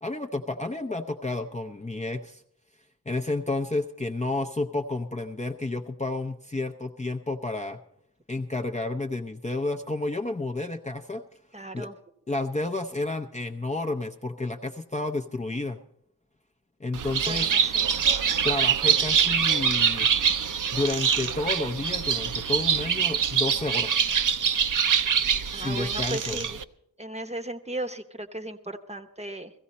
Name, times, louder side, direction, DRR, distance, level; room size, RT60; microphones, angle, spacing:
voice 1, 0.0-2.4 3.1-7.8 8.3-11.2 11.7-11.9 12.3-15.8 16.8-17.5 18.4-20.1 20.7-24.1 25.5-26.4, left 2 dB, 20° left, 3 dB, 0.6 m, -31 dB
voice 2, 11.5-11.9 17.3-17.9 25.5-26.6 27.0-29.5, right 1 dB, 15° right, 6 dB, 0.9 m, -36 dB
Bird, 16.9-26.6, right 7 dB, 55° right, 0.6 m, -24 dB
15.5 x 15.5 x 4.2 m, 0.73 s
wide cardioid pair, 85°, 39 cm